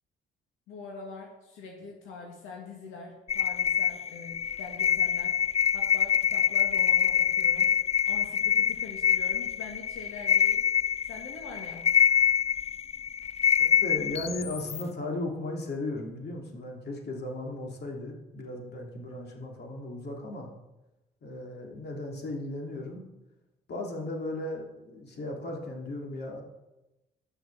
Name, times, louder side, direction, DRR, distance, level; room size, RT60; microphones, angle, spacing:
voice 1, 0.7-5.4 5.7-7.7 8.1-10.6 11.1-11.9, left 4 dB, 90° left, 1 dB, 1.9 m, -44 dB
sound 1, 3.3-14.8, left 8 dB, 30° left, 0.4 m, -25 dB
voice 2, 13.6-20.5 21.2-23.0 23.7-26.4, left 2 dB, 55° left, 0 dB, 3.0 m, -36 dB
11.0 x 6.9 x 7.4 m, 0.99 s
cardioid pair, 90°, 20 cm